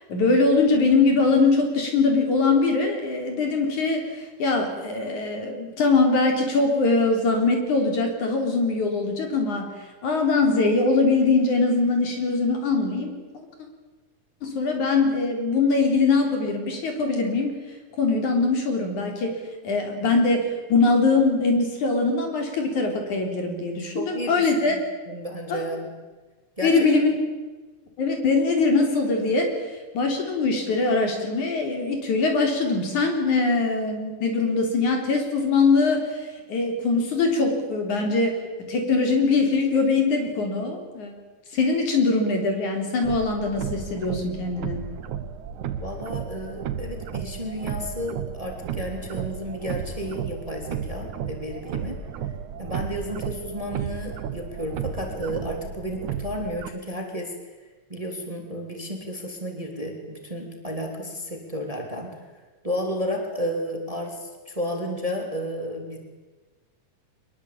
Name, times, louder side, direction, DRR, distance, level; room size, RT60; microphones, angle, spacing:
voice 1, 0.1-9.7 10.0-13.2 14.4-17.6 18.0-19.4 19.6-24.8 25.5-25.6 26.6-27.1 28.0-41.1 41.5-44.8, left 3 dB, 65° left, 3 dB, 5.0 m, -22 dB
voice 2, 23.9-24.8 25.1-25.9 26.6-26.9 45.8-52.0 52.6-57.3 57.9-62.2 62.6-66.0, equal, 10° right, 2 dB, 3.1 m, -32 dB
sound 1, 43.0-56.7, right 8 dB, 70° right, 2.4 m, -33 dB
23.5 x 21.5 x 8.7 m, 1.3 s
omnidirectional pair, 3.7 m